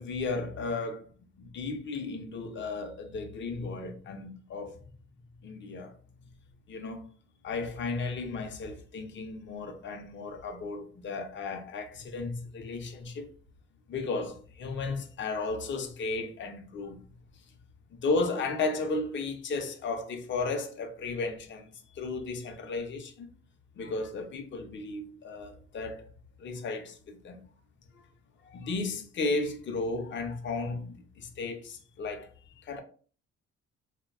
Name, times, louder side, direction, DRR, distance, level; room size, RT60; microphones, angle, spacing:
voice 1, 0.0-4.8 5.4-5.9 6.7-7.1 7.4-13.3 13.9-17.0 17.9-23.3 23.8-26.0 26.4-27.4 27.9-28.0 28.4-32.8, left 3 dB, 40° left, 0.5 m, -34 dB
2.5 x 2.1 x 2.3 m
cardioid pair, 90°, 30 cm